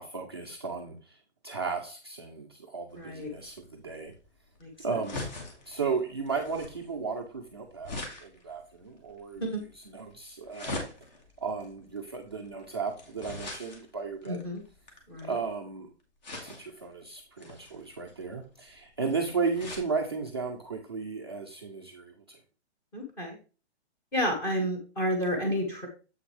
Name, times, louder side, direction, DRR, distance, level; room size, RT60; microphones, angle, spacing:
voice 1, 0.0-4.1 4.8-5.2 5.7-9.4 9.7-10.9 11.4-14.5 15.2-15.9 16.4-22.4, right 4 dB, 25° right, -1 dB, 0.4 m, -35 dB
sound 1, 2.9-15.5 16.2-16.9 17.4-19.9 20.4-20.5 20.7-20.8, left 2 dB, 40° left, 2.0 m, -43 dB
voice 2, 3.0-3.3 4.6-4.7 9.4-9.6 14.2-14.6 15.1-15.4 22.9-23.4 24.1-25.9, equal, 5° left, 1 dB, 0.9 m, -30 dB
7.8 x 5.9 x 3.2 m, 0.34 s
hypercardioid pair, 175°, 34 cm